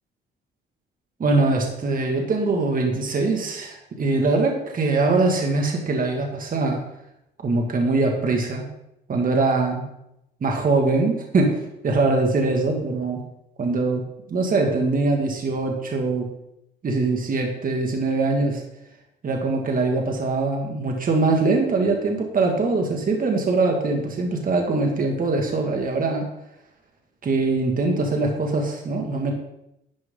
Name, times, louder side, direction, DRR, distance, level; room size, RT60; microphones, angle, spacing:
voice 1, 1.2-6.8 7.4-8.7 9.1-9.9 10.4-11.6 11.8-13.2 13.6-14.0 14.3-16.3 16.8-18.6 19.2-26.3 27.2-29.3, right 3 dB, 45° right, 2 dB, 2.0 m, -22 dB
11.5 x 7.7 x 3.8 m, 0.83 s
cardioid pair, 90°, 20 cm